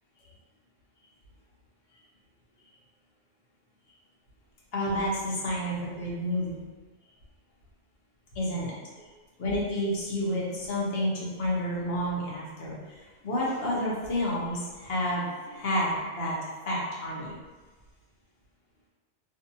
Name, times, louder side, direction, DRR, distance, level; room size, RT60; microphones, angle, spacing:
voice 1, 4.7-6.6 8.4-8.7 9.0-9.1 9.4-16.4 16.7-17.4, equal, 60° left, -5 dB, 0.8 m, -30 dB
2.6 x 2.5 x 2.6 m, 1.3 s
omnidirectional pair, 1.3 m